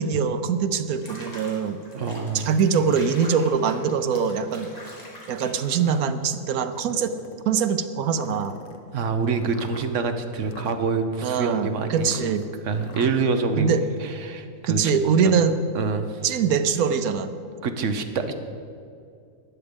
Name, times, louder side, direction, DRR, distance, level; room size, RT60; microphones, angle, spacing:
voice 1, 0.0-1.8 2.3-4.7 5.3-7.1 7.5-8.6 11.2-12.4 13.6-13.8 14.7-15.5 16.2-17.3, right 6 dB, 90° right, 10 dB, 1.2 m, -23 dB
Water / Bathtub (filling or washing), 0.9-6.3, left 1 dB, 30° left, 2.1 m, -44 dB
voice 2, 1.9-2.5 8.9-12.4 12.6-14.9 15.2-15.3 15.7-16.2 17.6-18.3, right 4 dB, 60° right, 8 dB, 1.1 m, -26 dB
sound 1, 2.9-3.6 4.2-4.3 5.3-6.0 6.7-7.5 8.1-13.1, left 4 dB, 65° left, 1.3 m, -47 dB
12.5 x 9.7 x 5.2 m, 2.3 s
omnidirectional pair, 1.5 m